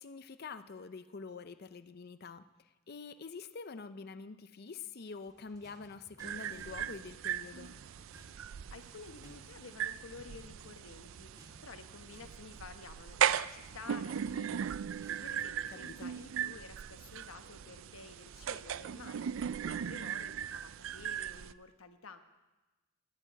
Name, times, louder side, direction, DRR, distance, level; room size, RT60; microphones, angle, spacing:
voice 1, 0.0-7.8 15.7-16.1, left 4 dB, 50° left, 11 dB, 0.5 m, -46 dB
sound 1, 5.1-16.5, right 1 dB, 20° right, 1.8 m, -61 dB
sound 2, 6.2-21.5, right 9 dB, 70° right, 0.4 m, -38 dB
voice 2, 8.3-22.2, left 4 dB, 85° left, 8 dB, 1.1 m, -52 dB
Engine, 10.1-19.1, right 1 dB, 40° right, 4.5 m, -70 dB
11.5 x 8.6 x 9.1 m, 1.1 s
head